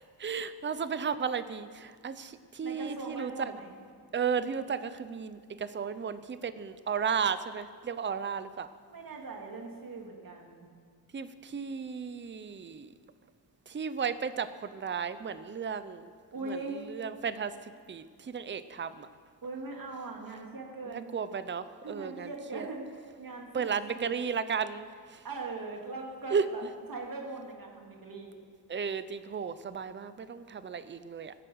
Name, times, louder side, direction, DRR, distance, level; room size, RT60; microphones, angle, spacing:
voice 1, 0.2-3.3 4.1-8.7 11.1-12.9 13.7-16.1 16.4-16.6 16.9-19.1 20.9-22.7 23.5-25.2 26.3-26.5 28.7-31.3, right 6 dB, 30° right, 13 dB, 0.6 m, -34 dB
voice 2, 2.6-3.8 8.9-10.7 16.3-16.8 19.4-21.1 21.8-24.1 25.2-26.6 26.9-28.4, right 3 dB, 55° right, 1 dB, 2.5 m, -41 dB
16.5 x 11.0 x 7.9 m, 2.1 s
wide cardioid pair, 170°, 42 cm